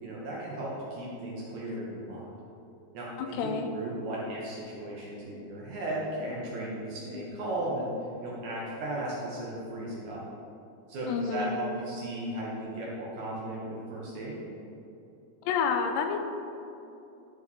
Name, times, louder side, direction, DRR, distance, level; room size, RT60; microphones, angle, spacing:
voice 1, 0.0-2.3 2.9-7.9 8.2-10.2 10.9-14.4, right 1 dB, 75° right, -5 dB, 1.7 m, -36 dB
voice 2, 3.2-3.7 11.1-11.6 15.4-16.2, left 6 dB, 85° left, 6 dB, 2.7 m, -29 dB
11.0 x 4.8 x 4.1 m, 2.8 s
omnidirectional pair, 4.8 m